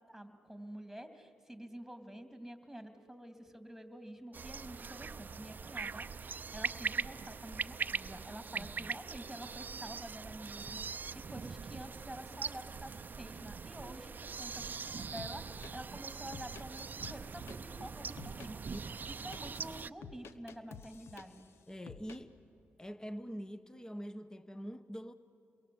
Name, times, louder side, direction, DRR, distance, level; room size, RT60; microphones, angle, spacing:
voice 1, 0.1-14.1 14.4-18.8 19.2-21.5, right 1 dB, ahead, 7 dB, 2.9 m, -49 dB
sound 1, 4.3-19.9, right 5 dB, 45° right, 0.6 m, -42 dB
voice 2, 8.5-8.9 18.7-18.8 21.7-22.3 22.8-25.1, equal, 15° left, 12 dB, 1.1 m, -45 dB
sound 2, 15.2-15.7 16.1-17.6 18.2-18.5 19.0-21.5 21.9-22.2, left 6 dB, 75° left, 1.0 m, -50 dB
28.5 x 22.5 x 7.9 m, 2.7 s
supercardioid pair, 55°, 4 cm